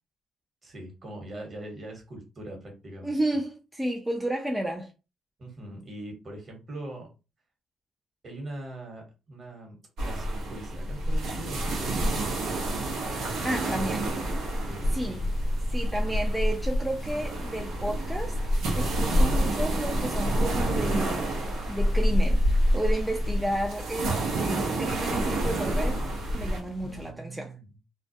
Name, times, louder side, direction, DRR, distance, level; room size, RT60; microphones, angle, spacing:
voice 1, 0.6-3.2 5.4-7.1 8.2-13.1 13.6-15.3 26.8-27.7, right 1 dB, 40° right, 1.1 m, -42 dB
voice 2, 3.0-4.9 13.4-14.1 14.9-15.2 15.7-18.4 18.8-26.0 26.3-27.5, right 1 dB, 10° right, 0.4 m, -32 dB
sound 1, 10.0-26.6, right 1 dB, 85° right, 0.7 m, -27 dB
sound 2, 11.0-27.1, left 3 dB, 55° left, 0.4 m, -44 dB
2.3 x 2.0 x 2.6 m
cardioid pair, 90°, 0 cm